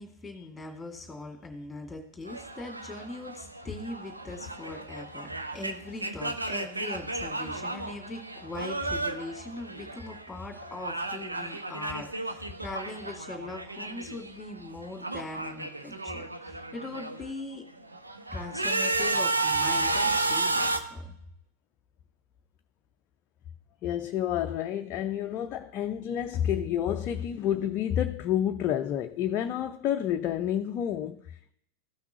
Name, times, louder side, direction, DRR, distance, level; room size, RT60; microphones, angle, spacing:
voice 1, 0.0-17.6 18.3-21.1, left 2 dB, 10° left, 2.2 m, -40 dB
sound 1, 2.3-10.3 10.5-14.3 14.6-17.3 17.8-20.8, right 2 dB, 80° right, 0.7 m, -32 dB
voice 2, 23.8-31.5, left 10 dB, 35° left, 0.4 m, -29 dB
14.0 x 5.9 x 2.8 m
figure-of-eight pair, 90°, 0 cm